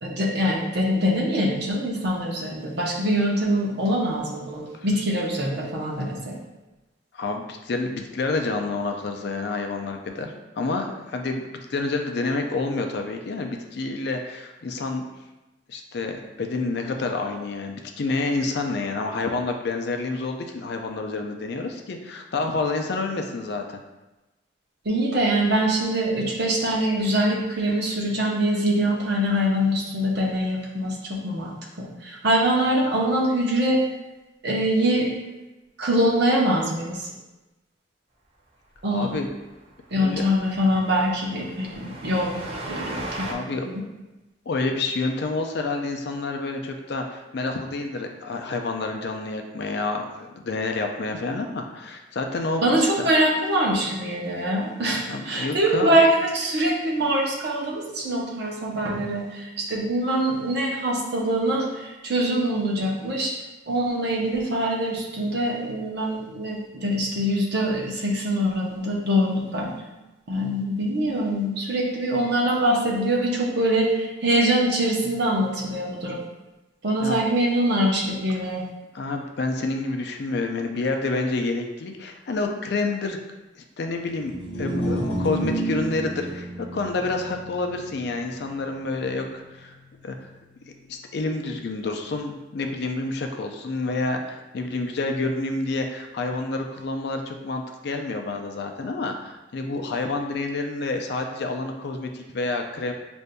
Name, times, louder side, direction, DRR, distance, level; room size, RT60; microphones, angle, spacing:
voice 1, 0.0-6.3 24.8-33.8 34.4-35.1 35.8-37.1 38.8-39.1 39.9-43.8 52.6-63.3 63.7-69.7 70.3-76.2 76.8-78.6, right 1 dB, 55° right, -3 dB, 0.8 m, -24 dB
voice 2, 7.1-11.4 11.7-15.0 15.7-23.8 38.9-39.3 40.0-40.3 43.2-43.7 44.5-52.6 53.0-53.1 55.1-56.0 77.0-77.2 78.9-83.2 83.8-84.3 84.6-89.7 90.0-90.2 90.9-102.9, left 3 dB, 60° left, 4 dB, 0.4 m, -28 dB
Train, 38.8-38.9 39.1-39.3 39.5-39.6 40.0-43.3, right 2 dB, 30° right, 0.5 m, -37 dB
sound 1, 84.2-90.5, right 1 dB, 10° left, 1.0 m, -31 dB
6.5 x 2.6 x 2.2 m, 1.1 s
head